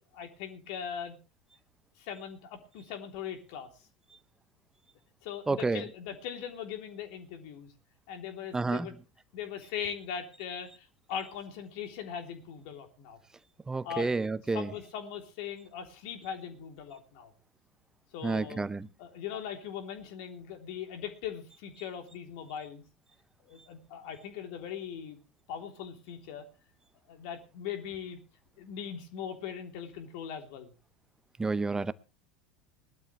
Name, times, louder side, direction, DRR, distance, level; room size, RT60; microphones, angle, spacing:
voice 1, 0.1-1.2 2.0-3.7 5.2-7.7 8.1-9.0 9.3-13.2 13.8-14.1 14.5-17.3 18.1-18.7 19.0-22.8 23.4-25.2 25.5-26.5 27.1-28.2 28.6-30.7, left 8 dB, 60° left, 3.4 m, -40 dB
voice 2, 5.5-5.8 8.5-8.9 13.7-14.7 18.2-18.9 31.4-31.9, right 3 dB, 15° right, 0.8 m, -30 dB
20.5 x 12.5 x 3.3 m
hypercardioid pair, 80°, 4 cm